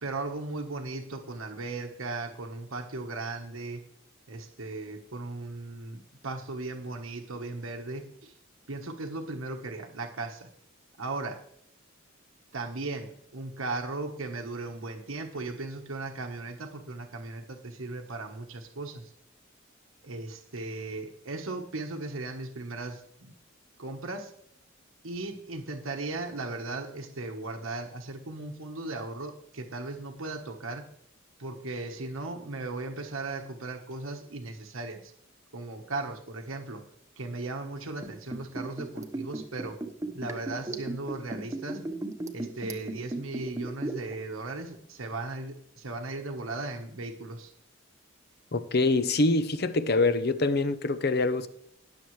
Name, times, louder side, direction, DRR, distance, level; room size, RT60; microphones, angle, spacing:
voice 1, 0.0-3.8 4.3-8.3 8.7-10.5 11.0-11.4 12.5-19.1 20.0-23.4 23.8-24.3 25.0-30.9 31.4-35.1 35.5-36.8 37.2-39.8 40.1-41.8 42.3-47.5, right 2 dB, 85° right, 1.2 m, -37 dB
Liquid, 38.0-44.2 44.4-44.5, right 2 dB, 15° right, 1.0 m, -35 dB
voice 2, 48.5-51.5, left 3 dB, 50° left, 0.8 m, -25 dB
20.5 x 7.0 x 3.2 m
head